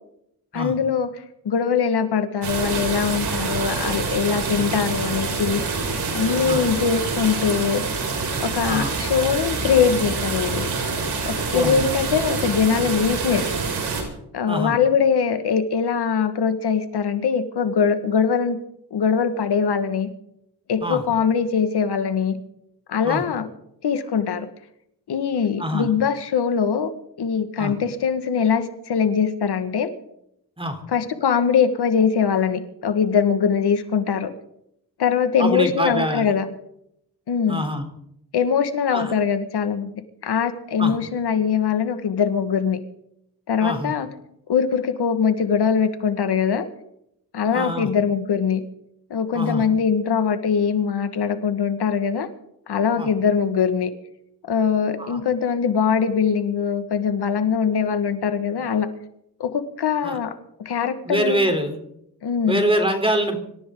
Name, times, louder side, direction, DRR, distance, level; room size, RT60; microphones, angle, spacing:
voice 1, 0.5-5.6 6.1-7.9 8.4-10.7 11.3-13.5 14.3-18.6 18.9-20.1 20.7-22.4 22.9-23.5 23.8-24.5 25.1-26.9 27.2-29.9 30.9-34.3 35.0-36.5 37.3-37.7 38.3-39.9 40.2-42.8 43.5-44.1 44.5-46.7 47.3-48.6 49.1-52.3 52.7-53.9 54.5-58.9 59.4-61.4 62.2-62.6, left 6 dB, 75° left, 9 dB, 1.8 m, -22 dB
sound 1, 2.4-14.0, right 4 dB, 70° right, 6.6 m, -26 dB
voice 2, 14.5-14.8 20.8-21.0 23.0-23.2 25.6-25.9 27.6-27.7 30.6-30.8 35.4-36.3 37.5-37.8 38.9-39.1 40.8-41.0 43.6-43.9 47.5-47.9 49.3-49.7 53.0-53.1 55.0-55.2 60.0-60.2 61.1-61.8 62.5-63.4, right 1 dB, 15° right, 6 dB, 3.6 m, -24 dB
26.0 x 14.5 x 3.9 m, 0.75 s
cardioid pair, 90°, 40 cm